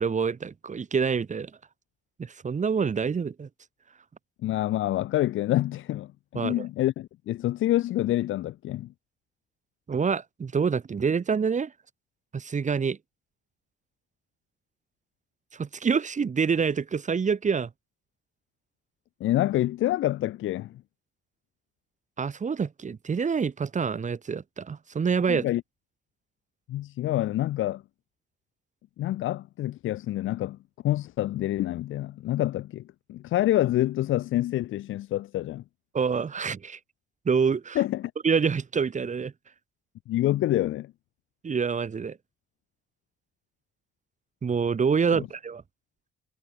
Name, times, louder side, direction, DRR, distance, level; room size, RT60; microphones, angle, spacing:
voice 1, 0.0-1.5 2.2-3.5 6.3-6.7 9.9-11.7 12.3-13.0 15.5-17.7 22.2-25.5 35.9-36.8 37.2-37.8 38.2-39.3 41.4-42.2 44.4-45.6, right 6 dB, 40° right, 2.7 m, -26 dB
voice 2, 4.4-8.9 19.2-20.8 25.3-25.6 26.7-27.8 29.0-30.6 30.8-32.8 33.1-35.6 37.7-38.1 40.1-40.9 45.1-45.3, left 14 dB, 85° left, 2.7 m, -27 dB
cardioid pair, 90°, 20 cm